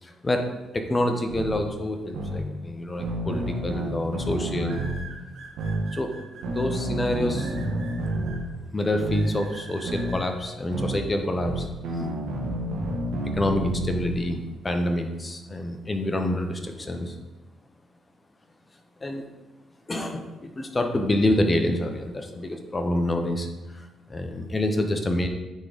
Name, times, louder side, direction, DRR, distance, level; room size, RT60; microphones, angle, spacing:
voice 1, 0.0-4.9 5.9-7.6 8.7-11.7 13.2-17.2 19.0-19.3 19.9-23.5 23.7-25.3, left 1 dB, 25° left, 5 dB, 0.9 m, -27 dB
sound 1, 1.3-1.5 2.1-2.4 3.0-5.0 5.6-5.8 6.4-8.4 9.0-9.3 9.9-10.1 10.7-11.0 11.4-14.2, right 1 dB, 90° right, 1.4 m, -29 dB
sound 2, 3.1-3.4 4.6-6.6 7.3-8.4 9.1-10.2, right 4 dB, 70° right, 1.9 m, -44 dB
9.3 x 3.9 x 5.1 m, 1.1 s
cardioid pair, 90°, 0 cm